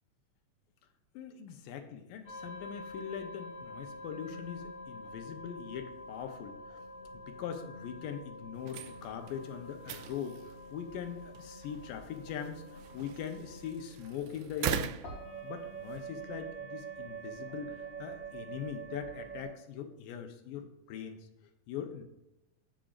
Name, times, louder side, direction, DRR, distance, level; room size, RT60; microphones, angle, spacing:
voice 1, 1.1-6.6 7.1-10.4 10.7-14.9 15.4-21.3 21.7-22.0, left 8 dB, 85° left, 6 dB, 2.5 m, -41 dB
sound 1, 2.2-19.5, right 2 dB, 55° left, 4.0 m, -46 dB
sound 2, 8.5-16.0, right 11 dB, 80° right, 2.0 m, -42 dB
14.5 x 5.1 x 2.5 m, 0.93 s
omnidirectional pair, 3.9 m